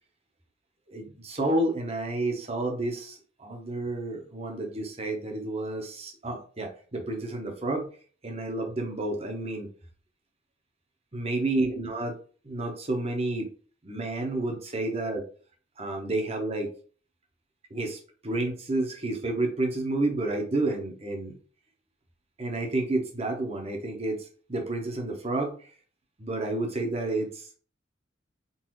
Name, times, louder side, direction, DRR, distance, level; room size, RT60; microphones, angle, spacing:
voice 1, 0.9-7.9 8.2-9.7 11.1-12.2 12.4-13.5 13.8-15.2 15.8-16.7 17.7-21.3 22.4-25.7 26.2-27.6, right 2 dB, 30° right, 2 dB, 1.0 m, -30 dB
4.0 x 3.3 x 3.1 m, 0.41 s
head